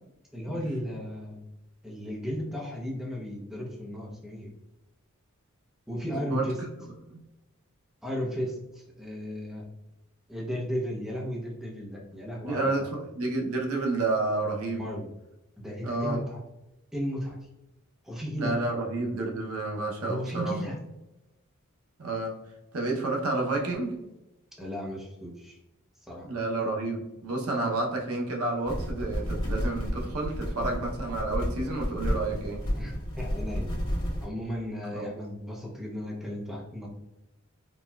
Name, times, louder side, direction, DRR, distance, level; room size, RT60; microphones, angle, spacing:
voice 1, 0.3-1.4 1.8-4.5 5.9-6.6 8.0-9.6 10.3-12.8 14.7-15.1 15.6-16.4 16.9-17.4 18.0-18.6 20.1-20.8 24.6-25.6 26.0-26.3 32.8-33.7 34.2-36.9, equal, ahead, -3 dB, 0.5 m, -35 dB
voice 2, 6.2-6.7 7.1-7.2 12.4-14.9 15.8-16.2 18.4-20.6 22.0-22.3 22.7-24.0 26.2-32.6 34.9-35.1, right 2 dB, 80° right, 0 dB, 0.7 m, -30 dB
sound 1, 28.7-34.3, equal, 65° left, 1.2 m, -31 dB
4.0 x 2.2 x 2.2 m, 0.95 s
head